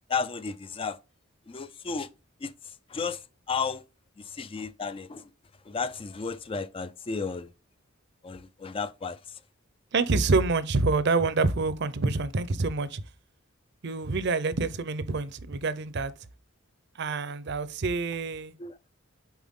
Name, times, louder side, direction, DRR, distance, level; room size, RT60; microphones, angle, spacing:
voice 1, 0.1-1.0 1.5-2.1 2.4-3.8 4.2-5.3 5.7-7.5 8.2-9.4 18.6-18.8, left 5 dB, 25° left, 0.3 m, -33 dB
voice 2, 9.9-13.0 13.8-16.1 17.0-18.5, right 3 dB, 55° right, 0.6 m, -27 dB
7.2 x 4.6 x 3.7 m
head